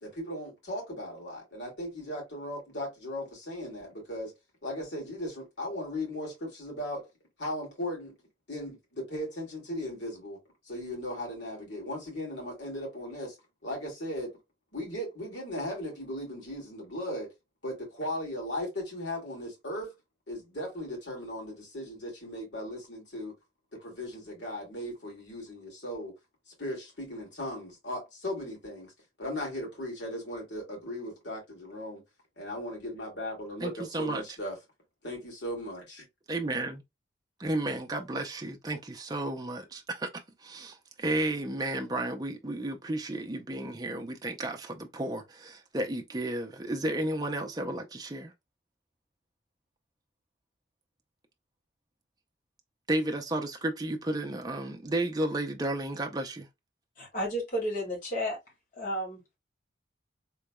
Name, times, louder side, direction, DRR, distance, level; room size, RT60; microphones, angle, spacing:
voice 1, 0.0-4.3 4.6-7.1 7.4-8.1 8.5-10.4 10.7-13.4 13.6-14.4 14.7-17.3 17.6-19.9 20.3-23.3 23.7-26.2 26.6-28.9 29.2-32.0 32.4-34.6 35.0-36.0, left 1 dB, 65° left, 2.5 m, -37 dB
voice 2, 33.6-34.2 36.3-36.8 37.4-40.1 40.4-48.3 52.9-56.5, right 1 dB, 20° right, 0.5 m, -32 dB
voice 3, 57.0-58.4 58.7-59.4, equal, 45° left, 2.1 m, -32 dB
3.8 x 3.3 x 2.2 m
head